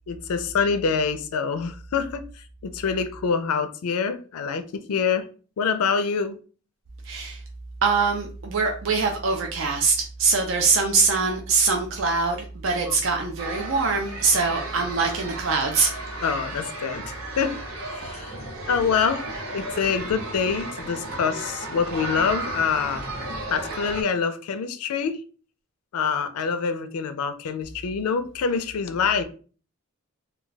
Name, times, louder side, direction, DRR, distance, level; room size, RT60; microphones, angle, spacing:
voice 1, 0.1-5.3 5.6-6.4 12.9-13.0 16.2-17.6 17.9-18.3 18.7-19.3 19.5-23.0 23.5-25.2 25.9-29.2, left 6 dB, 80° left, 0.4 m, -26 dB
voice 2, 7.1-7.4 7.8-12.4 12.6-15.9, right 4 dB, 60° right, 0.4 m, -23 dB
sound 1, 13.4-24.0, right 2 dB, 80° right, 0.9 m, -34 dB
2.3 x 2.2 x 3.9 m
head